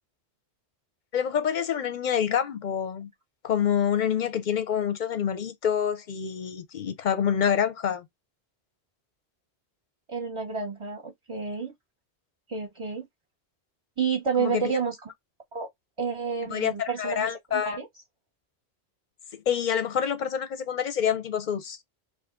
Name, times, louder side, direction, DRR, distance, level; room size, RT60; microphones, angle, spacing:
voice 1, 1.1-3.1 3.4-8.1 14.4-14.7 16.4-17.8 19.3-21.8, left 8 dB, 55° left, 0.6 m, -27 dB
voice 2, 10.1-11.7 12.5-13.1 14.0-15.0 15.5-15.7 16.0-17.9, right 5 dB, 35° right, 0.7 m, -30 dB
2.7 x 2.5 x 3.5 m
omnidirectional pair, 1.1 m